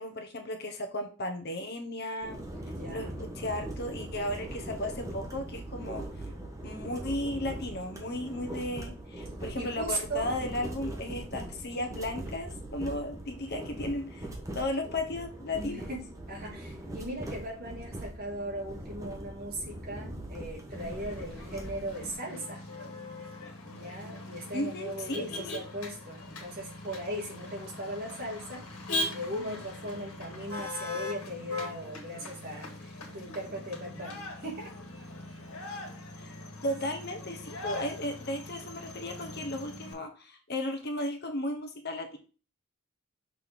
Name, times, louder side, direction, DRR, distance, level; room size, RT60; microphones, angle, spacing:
voice 1, 0.0-2.4 2.9-6.0 6.6-14.3 14.5-15.8 24.5-25.5 36.2-36.3 36.6-42.2, left 1 dB, 50° left, 5 dB, 1.0 m, -35 dB
sound 1, 2.2-22.1, right 1 dB, 15° right, 1.0 m, -41 dB
voice 2, 2.6-3.2 9.6-10.3 15.5-16.0 16.3-22.6 23.6-28.7 29.1-34.7, right 1 dB, 45° right, -2 dB, 2.4 m, -38 dB
Motor vehicle (road), 20.7-39.9, left 2 dB, 85° left, 1.7 m, -41 dB
6.2 x 4.3 x 3.6 m, 0.34 s
head